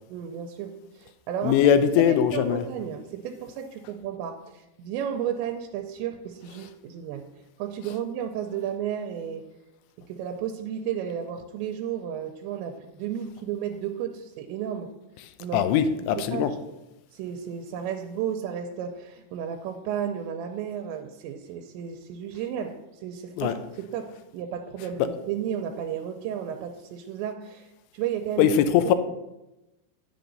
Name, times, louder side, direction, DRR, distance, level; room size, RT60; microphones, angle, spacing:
voice 1, 0.1-1.6 2.0-7.3 7.6-9.4 10.0-14.9 15.4-16.6 17.1-28.5, right 9 dB, 90° right, 2.9 m, -33 dB
voice 2, 1.4-2.6 15.5-16.5 23.4-23.5 25.0-25.1 28.4-29.0, left 9 dB, 85° left, 3.0 m, -21 dB
10.0 x 7.4 x 4.0 m
omnidirectional pair, 5.1 m